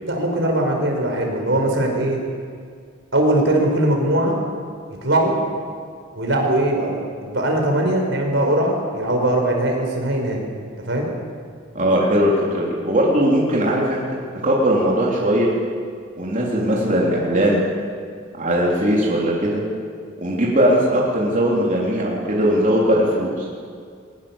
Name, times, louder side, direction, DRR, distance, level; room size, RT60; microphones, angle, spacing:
voice 1, 0.0-2.2 3.1-4.4 5.0-5.3 6.1-10.4 10.8-11.1, right 1 dB, 65° right, 1 dB, 5.0 m, -20 dB
voice 2, 11.7-15.5 16.2-17.6 18.3-19.6 20.2-23.5, equal, 40° right, -5 dB, 3.9 m, -19 dB
22.5 x 20.5 x 7.4 m, 2.2 s
head